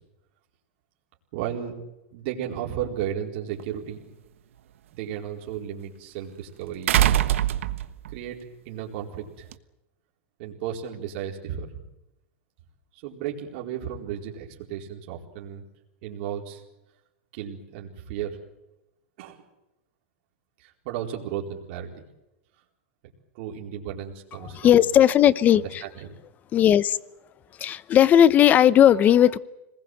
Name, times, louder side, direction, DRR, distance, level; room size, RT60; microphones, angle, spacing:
voice 1, 1.3-1.8 2.1-4.0 4.9-7.3 8.1-8.4 8.6-9.5 10.4-11.7 12.9-15.6 16.0-16.6 17.3-18.4 19.2-19.4 20.6-22.0 23.3-24.9 25.5-26.1 28.3-28.6, right 9 dB, 55° right, -1 dB, 4.4 m, -34 dB
sound 1, 3.6-3.7 6.9-8.2 9.5-9.6, right 13 dB, 85° right, 1.3 m, -22 dB
voice 2, 24.4-25.8 26.5-27.0 27.6-29.4, left 10 dB, 25° left, 18 dB, 0.8 m, -17 dB
26.5 x 20.5 x 7.9 m, 0.94 s
supercardioid pair, 155°, 7 cm